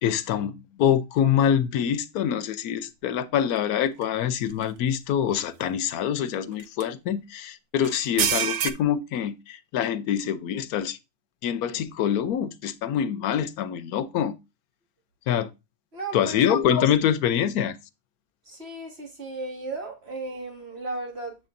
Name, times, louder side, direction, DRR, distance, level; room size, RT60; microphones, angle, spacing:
voice 1, 0.0-11.0 11.4-14.4 15.3-15.5 16.1-17.8, left 9 dB, 90° left, 1.1 m, -25 dB
sound 1, 4.0-4.1 4.6-4.7 6.6-6.8 7.8-8.7, right 9 dB, 65° right, 0.9 m, -26 dB
voice 2, 15.9-16.4 18.5-21.4, right 2 dB, 45° right, 2.2 m, -35 dB
7.6 x 7.4 x 2.5 m
omnidirectional pair, 1.5 m